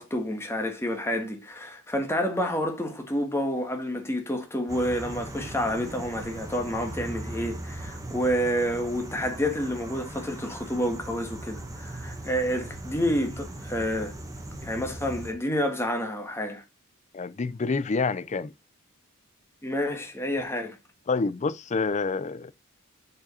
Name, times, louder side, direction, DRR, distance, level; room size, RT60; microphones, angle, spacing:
voice 1, 0.0-14.1 14.6-16.6 19.6-20.8, equal, 10° left, 1.7 m, -29 dB
sound 1, 4.7-15.3, right 1 dB, 15° right, 1.5 m, -39 dB
voice 2, 17.1-18.5 21.1-22.5, left 4 dB, 35° left, 0.5 m, -27 dB
7.7 x 5.0 x 5.5 m
head